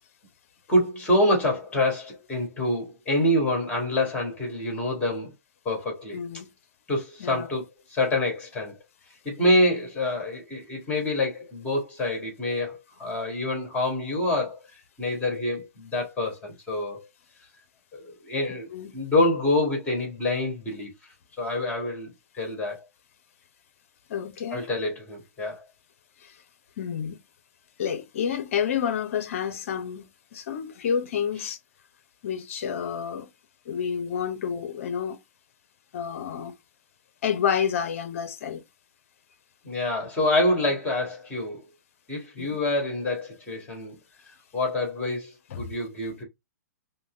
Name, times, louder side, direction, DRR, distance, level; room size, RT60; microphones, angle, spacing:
voice 1, 0.7-5.3 5.6-6.2 6.9-8.7 9.2-14.6 15.0-17.1 17.9-18.7 18.9-20.9 21.4-22.9 24.5-25.6 31.4-31.5 39.6-41.6 42.1-44.0 44.5-46.2, left 1 dB, 15° left, 2.3 m, -26 dB
voice 2, 6.1-6.5 7.2-7.5 18.7-18.9 24.1-24.6 26.2-26.3 26.8-27.2 27.8-30.1 30.3-31.6 32.2-33.3 33.7-35.2 35.9-36.5 37.2-38.6 42.4-42.6 45.5-45.7, left 8 dB, 55° left, 0.6 m, -29 dB
5.2 x 2.2 x 2.5 m
figure-of-eight pair, 120°, 9 cm